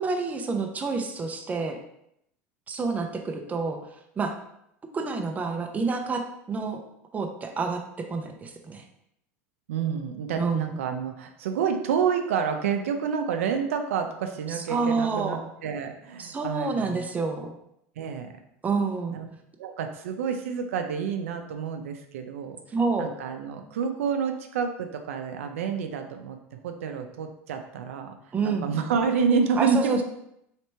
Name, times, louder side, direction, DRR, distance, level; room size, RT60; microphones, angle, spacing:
voice 1, 0.0-1.8 2.7-3.8 4.2-4.3 4.9-6.2 6.5-6.8 7.1-8.8 10.4-10.8 14.5-15.4 16.2-17.5 18.6-19.2 22.7-23.1 28.3-28.7 29.6-30.0, right 4 dB, 20° right, 4 dB, 0.6 m, -28 dB
voice 2, 9.7-17.1 18.0-18.3 19.1-19.3 19.6-22.6 23.0-28.1 28.4-30.0, right 6 dB, 90° right, 5 dB, 0.5 m, -28 dB
3.3 x 2.9 x 4.4 m, 0.76 s
supercardioid pair, 105°, 7 cm